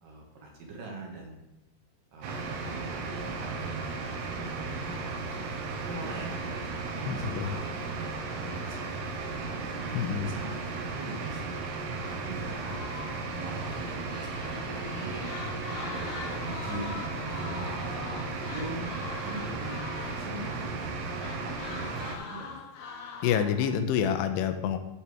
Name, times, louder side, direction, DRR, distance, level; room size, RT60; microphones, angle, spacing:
voice 1, 0.0-1.4 2.1-5.0 5.9-7.8 8.4-9.7 10.2-11.7 12.0-12.9 13.3-18.2 18.5-19.0 19.2-19.8 20.2-22.5, right 1 dB, 65° right, -1 dB, 2.8 m, -42 dB
sound 1, 2.2-22.2, right 3 dB, 85° right, 3.1 m, -35 dB
voice 2, 7.1-7.6 9.9-10.3 23.2-24.8, left 8 dB, 85° left, 8 dB, 2.8 m, -27 dB
sound 2, 12.5-20.9 21.2-23.8, left 5 dB, 70° left, 2.2 m, -43 dB
15.5 x 5.8 x 3.5 m, 0.85 s
omnidirectional pair, 4.8 m